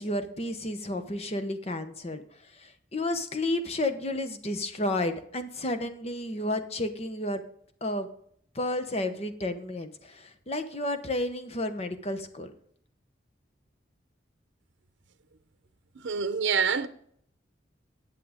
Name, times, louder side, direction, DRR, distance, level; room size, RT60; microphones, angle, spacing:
voice 1, 0.0-2.2 2.6-7.4 7.8-8.1 8.5-12.5, left 1 dB, 35° left, 0.9 m, -31 dB
voice 2, 16.0-16.9, right 6 dB, 85° right, 0.7 m, -26 dB
10.5 x 7.5 x 5.0 m
head